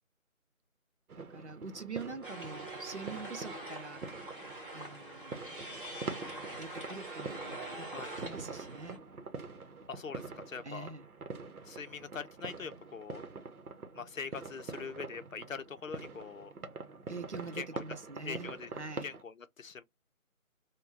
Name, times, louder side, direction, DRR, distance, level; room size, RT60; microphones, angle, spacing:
sound 1, 1.1-19.2, right 4 dB, 85° right, 0.8 m, -45 dB
voice 1, 1.2-4.0 4.7-5.4 6.5-9.0 10.6-11.1 17.1-19.1, right 4 dB, 55° right, 0.6 m, -44 dB
sound 2, 2.2-9.0, right 1 dB, 40° right, 1.0 m, -44 dB
voice 2, 9.9-10.9 11.6-13.2 13.9-16.5 17.6-17.8 18.2-18.7 19.0-19.8, left 6 dB, 65° left, 0.6 m, -43 dB
2.6 x 2.2 x 3.3 m
figure-of-eight pair, 170°, 42 cm